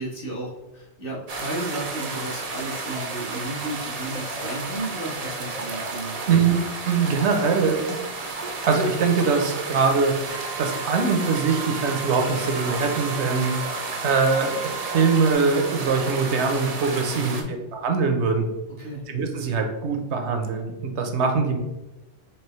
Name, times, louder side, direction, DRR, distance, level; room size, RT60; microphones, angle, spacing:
voice 1, 0.0-6.2 17.1-17.5 18.8-19.0, right 1 dB, 50° left, -5 dB, 1.3 m, -33 dB
sound 1, 1.3-17.4, right 3 dB, 45° right, 0.5 m, -32 dB
voice 2, 6.3-7.8 8.6-13.5 14.0-18.4 19.1-21.6, right 5 dB, 75° right, 4 dB, 0.9 m, -23 dB
sound 2, 10.3-15.3, right 6 dB, 15° left, 0.8 m, -38 dB
4.6 x 3.0 x 3.1 m, 1.0 s
omnidirectional pair, 1.2 m